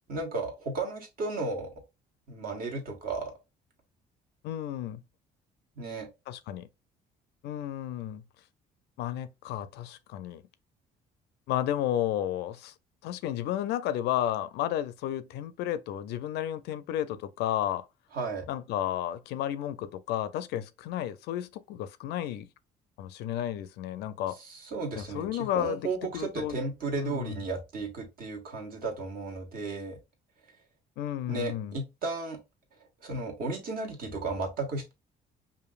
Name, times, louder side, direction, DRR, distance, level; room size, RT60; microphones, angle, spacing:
voice 1, 0.1-1.7 2.3-3.3 5.8-6.1 18.1-18.5 24.3-30.0 31.3-32.4 33.0-34.9, right 3 dB, 60° right, 1.4 m, -34 dB
voice 2, 4.4-5.0 6.3-6.7 7.4-8.2 9.0-10.4 11.5-12.7 13.0-17.9 18.5-22.5 23.0-24.4 25.0-26.6 27.0-27.4 31.0-31.8, left 11 dB, 80° left, 0.4 m, -32 dB
5.0 x 2.6 x 2.4 m
cardioid pair, 110°, 17 cm